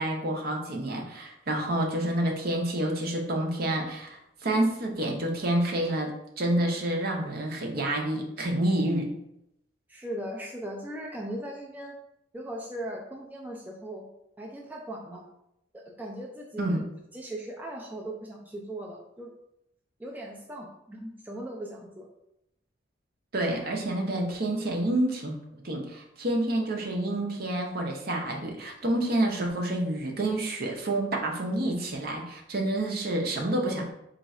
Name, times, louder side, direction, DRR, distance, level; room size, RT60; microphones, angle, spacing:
voice 1, 0.0-9.1 16.6-16.8 23.3-25.4 25.6-33.9, right 1 dB, 50° right, 1 dB, 0.7 m, -28 dB
voice 2, 9.9-12.0 12.3-14.1 14.4-15.3 15.7-16.8 17.1-19.3 20.0-22.1, right 1 dB, 10° right, -2 dB, 0.4 m, -38 dB
3.8 x 2.3 x 4.2 m, 0.82 s
head